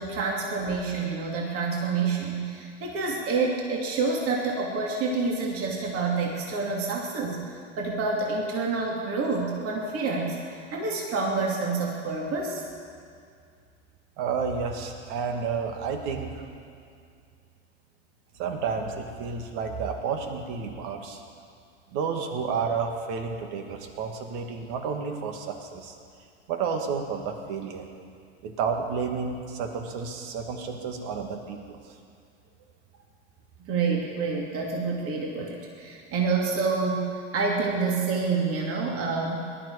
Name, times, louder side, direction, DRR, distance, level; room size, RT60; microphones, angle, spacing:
voice 1, 0.0-7.5 7.8-10.4 10.7-12.6 33.6-39.4, right 4 dB, 40° right, -2 dB, 2.8 m, -28 dB
voice 2, 14.2-16.3 18.4-21.2 21.9-25.9 26.5-27.9 28.4-31.8, right 5 dB, 60° right, 3 dB, 2.3 m, -31 dB
19.0 x 12.0 x 4.9 m, 2.3 s
hypercardioid pair, 90°, 34 cm